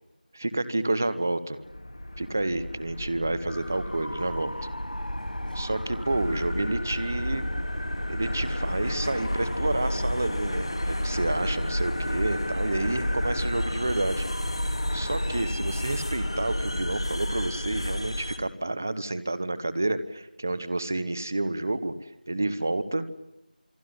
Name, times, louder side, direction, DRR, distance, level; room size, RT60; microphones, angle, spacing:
voice 1, 0.3-1.6 2.2-4.7 5.5-7.4 8.1-14.2 14.9-23.1, right 2 dB, 15° right, 13 dB, 0.9 m, -29 dB
sound 1, 1.6-18.4, left 1 dB, 35° left, 3.1 m, -31 dB
sound 2, 3.5-17.1, equal, 90° left, 4.4 m, -40 dB
28.5 x 21.0 x 9.7 m, 0.93 s
figure-of-eight pair, 175°, 5 cm